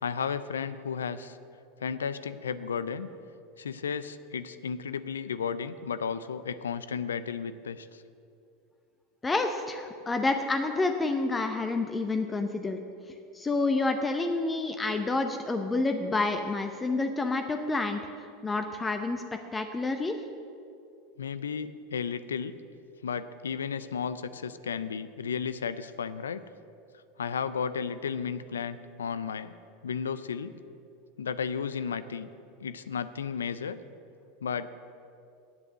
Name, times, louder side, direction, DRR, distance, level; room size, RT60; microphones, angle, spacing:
voice 1, 0.0-1.4 1.8-3.1 3.6-8.0 21.2-22.5 23.0-26.4 27.2-29.5 29.8-30.5 31.2-32.3 32.6-33.8 34.4-34.7, left 6 dB, 85° left, 14 dB, 0.4 m, -33 dB
voice 2, 9.2-12.8 13.3-18.0 18.4-19.2 19.5-20.1, left 3 dB, 20° left, 6 dB, 0.7 m, -28 dB
8.1 x 8.1 x 7.5 m, 2.5 s
hypercardioid pair, 90°, 0 cm